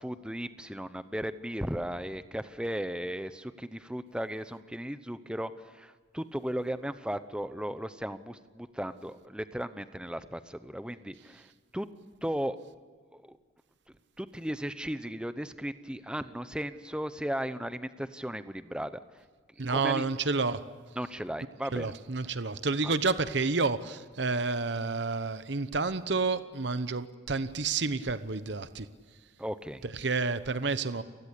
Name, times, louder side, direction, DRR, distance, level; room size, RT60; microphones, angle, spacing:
voice 1, 0.0-11.5 11.7-11.9 12.2-12.6 13.1-13.4 14.2-19.0 19.7-20.1 21.0-21.9 22.8-22.9 29.4-29.9, equal, 5° right, 12 dB, 0.8 m, -36 dB
voice 2, 19.6-20.6 21.7-28.9 29.8-31.0, right 4 dB, 60° right, 12 dB, 1.0 m, -30 dB
29.5 x 19.5 x 8.4 m, 1.5 s
head